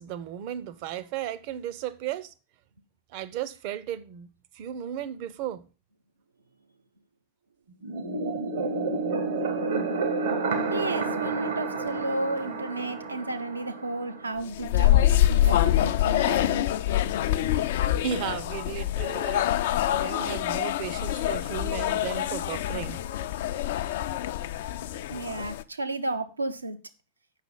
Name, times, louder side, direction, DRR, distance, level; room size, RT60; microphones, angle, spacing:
voice 1, 0.0-2.3 3.1-4.3 4.5-5.6 18.0-23.0, right 10 dB, 45° right, 0.7 m, -35 dB
sound 1, 7.8-14.4, right 3 dB, 65° right, 1.2 m, -30 dB
voice 2, 10.7-16.7 25.1-26.8, right 2 dB, 80° right, 0.8 m, -33 dB
sound 2, 14.5-25.6, left 12 dB, 55° left, 0.4 m, -25 dB
7.4 x 6.0 x 5.4 m
figure-of-eight pair, 90°, 0 cm